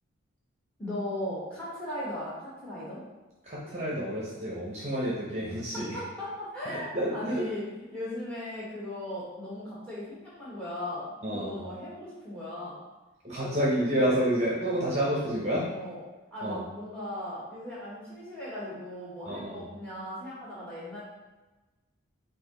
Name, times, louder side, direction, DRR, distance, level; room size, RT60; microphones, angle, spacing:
voice 1, 0.8-3.0 5.7-7.7 7.9-12.8 13.4-13.8 15.7-16.0 16.3-21.0, left 1 dB, 5° left, -8 dB, 1.4 m, -38 dB
voice 2, 3.5-6.0 6.9-7.4 11.2-11.6 13.2-15.6 16.4-16.6 19.3-19.6, equal, 30° right, -6 dB, 0.8 m, -29 dB
4.8 x 2.7 x 3.8 m, 1.1 s
head